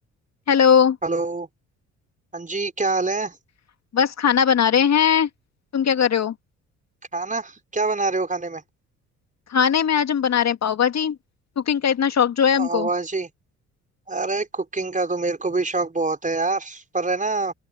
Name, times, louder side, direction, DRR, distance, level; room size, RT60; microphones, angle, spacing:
voice 1, 0.5-1.0 3.9-5.3 5.7-6.3 9.5-11.2 11.6-12.9, left 7 dB, 45° left, 2.4 m, -19 dB
voice 2, 1.0-1.5 2.3-3.3 7.1-8.6 12.6-13.3 14.1-17.5, right 3 dB, 20° right, 5.3 m, -25 dB
open air
figure-of-eight pair, 50°, 38 cm